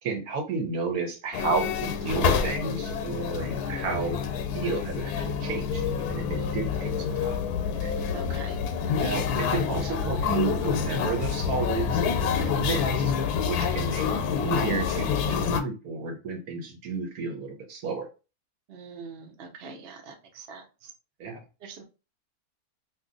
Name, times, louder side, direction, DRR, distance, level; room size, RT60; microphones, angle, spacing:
voice 1, 0.0-5.8 6.1-7.4 7.8-7.9 9.0-13.1 13.4-14.1 14.4-18.1 21.2-21.4, right 4 dB, 75° right, 3 dB, 1.2 m, -32 dB
sound 1, 1.3-15.6, left 7 dB, 85° left, 1.1 m, -27 dB
voice 2, 6.3-6.7 8.1-8.6 18.7-20.9 21.6-21.8, right 5 dB, 50° right, 2 dB, 0.8 m, -44 dB
2.8 x 2.5 x 3.7 m, 0.31 s
omnidirectional pair, 1.6 m